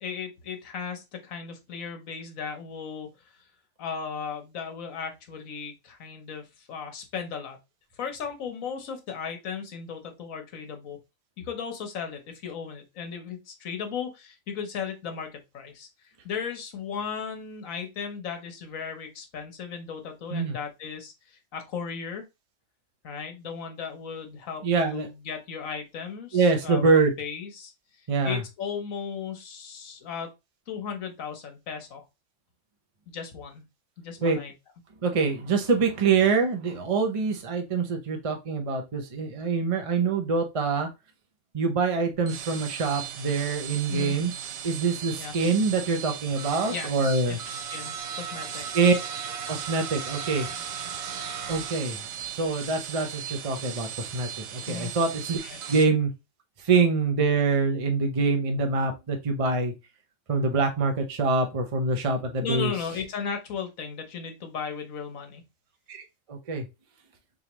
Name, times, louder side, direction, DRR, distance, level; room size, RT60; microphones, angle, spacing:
voice 1, 0.0-3.2 3.8-7.6 8.0-11.0 11.4-15.9 16.2-22.2 23.0-27.7 28.0-30.3 30.7-32.0 33.1-33.6 34.0-34.5 43.9-44.2 45.2-45.4 46.7-48.9 54.7-54.9 55.4-55.6 62.4-65.4, left 6 dB, 70° left, 5 dB, 1.4 m, -36 dB
voice 2, 24.6-25.1 26.3-27.1 28.1-28.4 34.2-34.4 35.0-40.9 41.5-44.3 44.6-47.4 48.7-48.9 49.5-50.5 51.5-52.0 52.3-55.4 55.7-56.1 56.6-59.7 60.3-62.7 65.9-66.0 66.3-66.6, right 4 dB, 30° right, 4 dB, 0.7 m, -25 dB
sound 1, 42.1-55.8, right 8 dB, 75° right, 1.0 m, -37 dB
3.9 x 3.5 x 3.0 m, 0.24 s
omnidirectional pair, 1.5 m